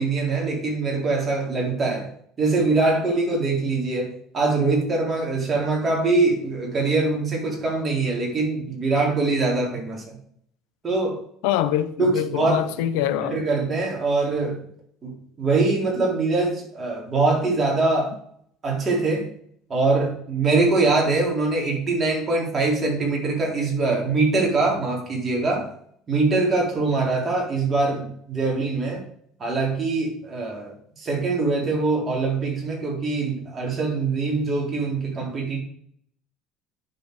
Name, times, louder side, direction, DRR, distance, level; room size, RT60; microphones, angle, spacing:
voice 1, 0.0-2.1 2.4-10.2 10.8-11.2 12.0-12.7 13.2-14.6 15.0-18.1 18.6-19.3 19.7-25.7 26.1-29.0 29.4-35.6, right 3 dB, 30° right, 4.1 m, -23 dB
voice 2, 11.4-13.4, left 12 dB, 85° left, 0.7 m, -24 dB
9.8 x 7.1 x 4.9 m
supercardioid pair, 110°, 0 cm